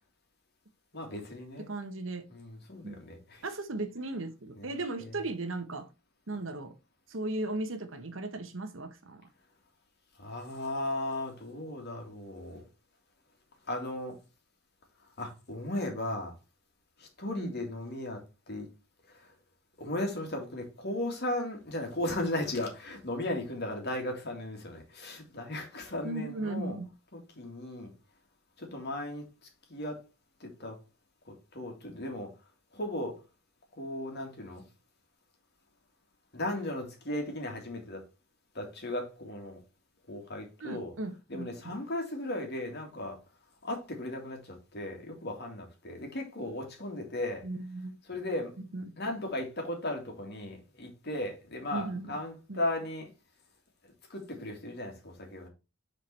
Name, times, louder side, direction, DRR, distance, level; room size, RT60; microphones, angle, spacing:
voice 1, 0.9-1.7 2.3-3.4 4.6-4.7 5.0-5.1 10.2-12.6 13.7-14.2 15.2-16.3 17.0-18.7 19.1-19.3 19.8-26.8 27.1-27.9 28.6-29.3 29.7-30.0 30.4-30.8 31.3-32.3 32.7-33.2 33.8-34.7 36.3-38.0 38.5-39.6 40.1-40.9 41.3-43.2 43.6-47.4 48.1-48.5 49.0-53.1 54.1-55.5, left 1 dB, 55° left, 2.2 m, -36 dB
voice 2, 1.7-2.2 2.8-3.0 3.4-5.9 6.3-6.7 7.1-9.3 17.3-17.5 26.0-26.9 40.6-41.8 47.4-48.0 48.7-48.9 51.7-52.2 52.5-52.6, right 2 dB, 65° right, 1.1 m, -37 dB
6.4 x 4.6 x 4.4 m
head